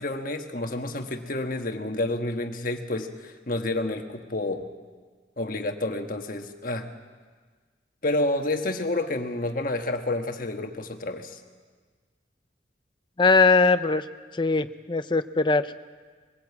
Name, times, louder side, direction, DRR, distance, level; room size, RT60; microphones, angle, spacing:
voice 1, 0.0-4.7 5.4-6.9 8.0-11.4, left 2 dB, 45° left, 5 dB, 1.4 m, -29 dB
voice 2, 13.2-14.0 14.3-15.7, left 3 dB, 25° left, 11 dB, 0.6 m, -21 dB
21.5 x 17.5 x 8.4 m, 1.5 s
head